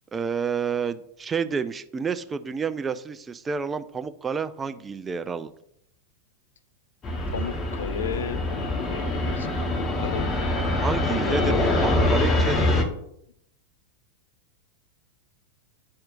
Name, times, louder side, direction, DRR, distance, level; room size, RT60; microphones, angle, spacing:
voice 1, 0.1-5.5 10.8-12.6, right 5 dB, 15° right, 11 dB, 0.4 m, -29 dB
Fixed-wing aircraft airplane, 7.0-12.8, left 2 dB, 25° left, 1.0 m, -24 dB
voice 2, 7.3-10.3 11.1-11.7, left 7 dB, 65° left, 11 dB, 0.5 m, -35 dB
10.5 x 4.3 x 2.5 m, 0.73 s
figure-of-eight pair, 90°, 0 cm